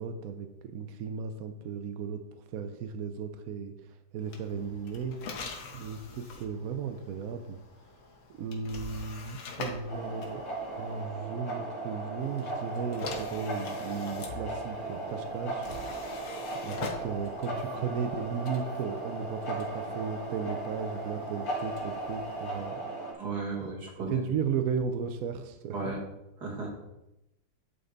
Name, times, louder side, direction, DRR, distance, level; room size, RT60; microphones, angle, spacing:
voice 1, 0.0-5.2 5.7-7.6 8.4-10.4 10.8-16.3 16.5-22.8 23.6-25.8, right 6 dB, 70° right, 7 dB, 0.8 m, -35 dB
sound 1, 4.2-11.1 12.2-22.7, left 3 dB, 90° left, 1.9 m, -45 dB
sound 2, 9.9-23.1, right 2 dB, 70° left, 2.7 m, -37 dB
voice 2, 23.1-24.2 25.7-26.0 26.4-26.8, right 3 dB, 55° right, -2 dB, 2.5 m, -35 dB
9.3 x 5.6 x 3.9 m, 0.91 s
omnidirectional pair, 2.1 m